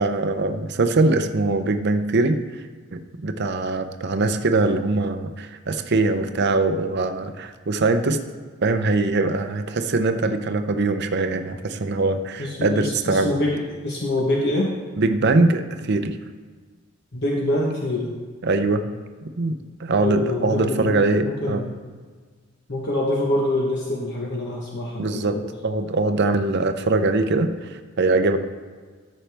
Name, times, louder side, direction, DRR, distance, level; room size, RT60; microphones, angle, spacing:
voice 1, 0.0-2.6 2.9-8.2 8.6-13.4 15.0-16.2 18.4-18.8 19.4-21.6 25.0-28.4, right 3 dB, 55° right, 8 dB, 0.6 m, -22 dB
voice 2, 12.4-14.7 17.1-18.2 20.0-21.7 22.7-25.5, left 1 dB, 55° left, -2 dB, 1.1 m, -25 dB
13.0 x 6.4 x 3.4 m, 1.5 s
head